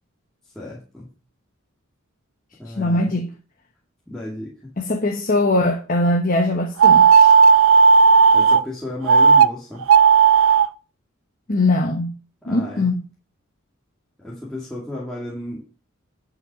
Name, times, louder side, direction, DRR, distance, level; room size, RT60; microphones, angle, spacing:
voice 1, 0.5-1.1 2.6-3.1 4.1-4.7 7.8-8.0 8.3-9.8 12.4-12.9 14.2-15.7, left 1 dB, ahead, 2.3 m, -33 dB
voice 2, 2.6-3.3 4.8-7.3 11.5-12.1 12.5-13.0, left 2 dB, 40° left, 1.1 m, -21 dB
sound 1, 6.8-8.6 9.1-9.5 9.8-10.7, right 6 dB, 75° right, 0.5 m, -12 dB
10.0 x 5.4 x 6.1 m
head